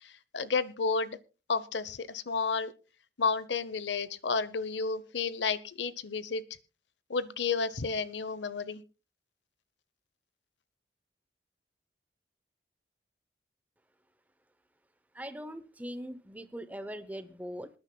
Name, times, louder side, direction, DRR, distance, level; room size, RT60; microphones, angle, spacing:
voice 1, 0.0-1.2 1.5-2.7 3.2-6.4 7.1-8.8, left 4 dB, 85° left, 16 dB, 0.8 m, -31 dB
voice 2, 15.2-17.7, equal, 10° right, 13 dB, 0.7 m, -41 dB
26.5 x 9.7 x 2.2 m, 0.32 s
head